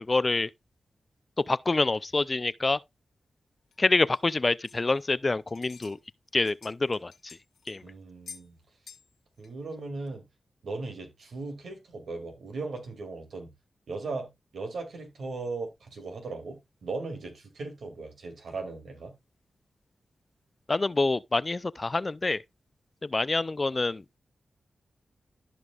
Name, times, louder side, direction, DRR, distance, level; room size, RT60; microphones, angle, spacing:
voice 1, 0.1-0.5 1.5-2.8 3.8-6.0 6.3-7.4 7.7-7.8 20.7-22.4 23.0-24.0, left 3 dB, 35° left, 0.3 m, -26 dB
sound 1, 3.7-5.2 5.5-6.0 6.3-7.8 8.3-8.5 8.9-9.1 9.4-9.5 10.1-10.2, left 6 dB, 85° left, 1.4 m, -49 dB
voice 2, 7.8-8.6 9.4-10.2 10.6-13.5 13.9-14.3 14.5-19.1, right 3 dB, 80° right, 2.4 m, -37 dB
14.0 x 5.3 x 2.4 m
cardioid pair, 55°, 0 cm